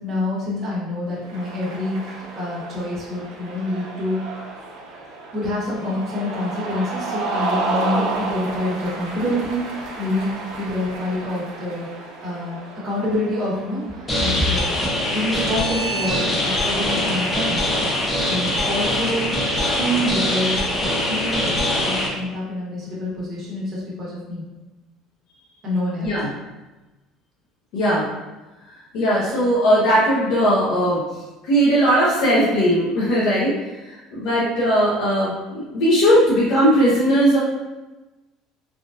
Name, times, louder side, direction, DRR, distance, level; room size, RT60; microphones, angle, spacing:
voice 1, 0.0-4.2 5.3-11.9 12.2-12.6 12.8-14.7 15.1-17.6 18.3-19.2 19.6-20.6 21.1-24.4 25.6-26.1, left 1 dB, 45° right, -6 dB, 1.3 m, -27 dB
Cheering, 1.2-14.6, right 3 dB, 85° right, 0.6 m, -31 dB
sound 1, 14.1-22.1, left 1 dB, 20° left, 0.8 m, -22 dB
voice 2, 27.7-28.1 28.9-31.0 31.4-33.5 33.8-37.4, equal, 75° left, -9 dB, 0.9 m, -18 dB
3.5 x 2.5 x 2.6 m, 1.1 s
cardioid pair, 120°, 0 cm